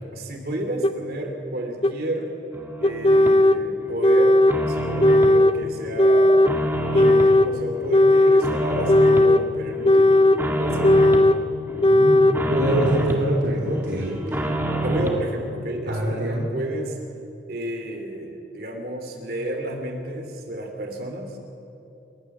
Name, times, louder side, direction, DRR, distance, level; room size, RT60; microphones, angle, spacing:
voice 1, 0.1-2.4 2.8-6.4 6.9-10.1 10.6-11.1 14.8-17.0 17.5-21.3, right 1 dB, 55° right, 3 dB, 3.1 m, -31 dB
sound 1, 0.8-0.9 1.8-1.9 2.8-3.6 4.0-4.6 5.0-5.6 6.0-6.5 6.9-7.5 7.9-8.5 8.9-9.4 9.8-10.4 10.8-11.4 11.8-12.4, left 1 dB, 30° left, 0.6 m, -16 dB
sound 2, 2.5-3.4 3.8-5.4 5.8-7.4 7.7-9.3 9.7-11.3 11.7-13.3 13.7-15.2, right 1 dB, 10° right, 1.9 m, -28 dB
voice 2, 11.9-14.2 14.9-15.1 15.9-16.4, right 1 dB, 75° right, -4 dB, 3.2 m, -24 dB
28.0 x 13.5 x 7.3 m, 2.8 s
head